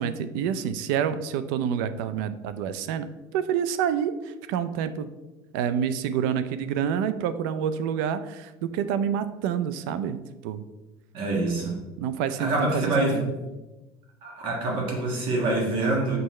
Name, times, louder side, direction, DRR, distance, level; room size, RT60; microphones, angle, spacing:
voice 1, 0.0-5.1 5.5-10.6 12.0-13.3, right 8 dB, 85° right, 12 dB, 0.5 m, -28 dB
voice 2, 11.1-11.8 12.4-13.2 14.2-16.2, right 2 dB, 55° right, -1 dB, 1.5 m, -25 dB
6.7 x 5.4 x 3.1 m, 1.1 s
cardioid pair, 155°, 11 cm